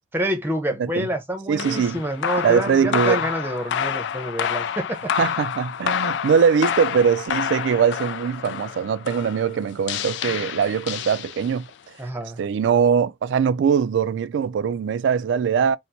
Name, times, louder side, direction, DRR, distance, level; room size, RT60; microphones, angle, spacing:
voice 1, 0.1-5.0 12.0-12.4, equal, 10° right, 0.7 m, -27 dB
voice 2, 1.5-2.0 2.4-3.2 5.2-11.7 12.4-15.8, right 7 dB, 85° right, 0.3 m, -21 dB
sound 1, 1.6-11.7, left 8 dB, 80° left, 0.3 m, -28 dB
4.3 x 2.0 x 2.6 m
head